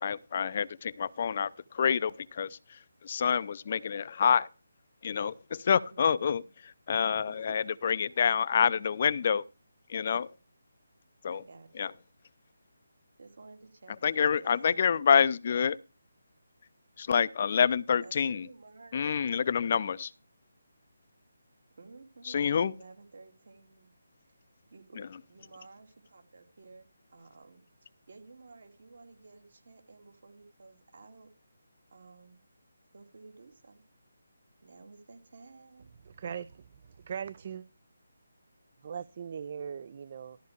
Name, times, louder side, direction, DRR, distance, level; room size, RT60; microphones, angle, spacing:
voice 1, 0.0-4.5 5.0-6.4 6.9-9.5 9.9-10.3 11.2-11.4 11.8-11.9 14.0-15.8 17.0-18.5 18.9-20.1 22.3-22.7, left 7 dB, 45° left, 0.5 m, -27 dB
voice 2, 5.9-6.5 7.3-8.4 11.3-12.0 13.2-14.9 18.0-19.9 21.8-23.9 24.2-24.4 24.7-31.3 31.9-32.4 32.9-33.8 34.6-35.9, right 3 dB, 60° right, 2.7 m, -54 dB
voice 3, 36.0-37.6 38.8-40.4, right 7 dB, 40° right, 0.5 m, -40 dB
13.5 x 4.5 x 6.5 m
figure-of-eight pair, 155°, 0 cm